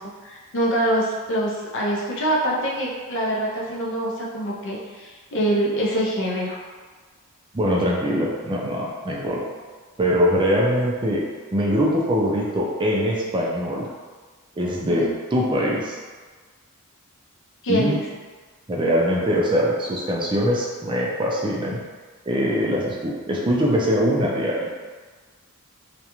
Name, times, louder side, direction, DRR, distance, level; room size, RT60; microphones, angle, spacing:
voice 1, 0.0-6.6 14.9-15.1 17.6-18.0, right 1 dB, 60° left, -3 dB, 0.5 m, -25 dB
voice 2, 7.5-9.4 10.0-11.2 11.5-13.9 14.6-16.0 17.7-18.0 18.7-21.8 22.3-24.7, equal, 20° right, -4 dB, 0.4 m, -22 dB
2.4 x 2.1 x 2.9 m, 1.5 s
head